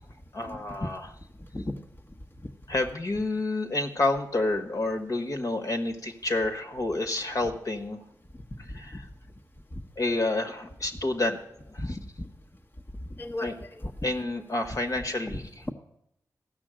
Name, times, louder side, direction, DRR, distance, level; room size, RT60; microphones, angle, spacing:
voice 1, 0.3-1.0 2.7-8.0 8.8-8.9 10.0-11.4 11.7-11.8 13.4-13.5 14.0-15.4, left 2 dB, 50° left, 4 dB, 1.5 m, -29 dB
voice 2, 11.8-12.3 13.2-13.9, left 1 dB, 30° left, 1 dB, 1.1 m, -35 dB
15.0 x 6.0 x 7.6 m, 0.77 s
cardioid pair, 55°, 7 cm